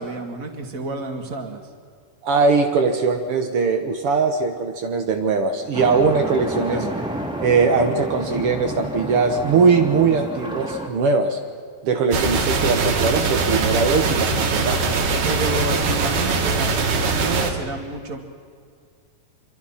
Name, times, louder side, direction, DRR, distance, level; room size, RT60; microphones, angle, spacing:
voice 1, 0.0-1.6 6.7-6.9 15.2-18.2, right 3 dB, 30° right, 4 dB, 1.8 m, -29 dB
voice 2, 2.2-6.8 7.4-11.4 11.8-14.8, right 4 dB, 85° right, 4 dB, 1.2 m, -20 dB
sound 1, 5.7-10.9, right 1 dB, ahead, 1.7 m, -30 dB
sound 2, 12.1-17.5, right 4 dB, 60° right, 3.5 m, -21 dB
26.0 x 24.5 x 5.8 m, 2.1 s
omnidirectional pair, 4.4 m